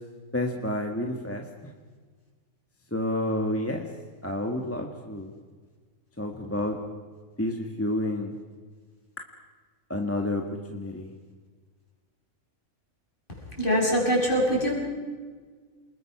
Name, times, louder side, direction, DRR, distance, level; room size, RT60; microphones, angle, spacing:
voice 1, 0.3-1.4 2.9-3.9 4.2-5.3 6.2-6.8 7.4-8.3 9.9-10.4 10.7-11.1, left 1 dB, 10° left, 1 dB, 1.6 m, -29 dB
voice 2, 13.6-14.7, equal, 35° left, -1 dB, 6.0 m, -23 dB
29.0 x 21.0 x 6.0 m, 1.5 s
omnidirectional pair, 1.5 m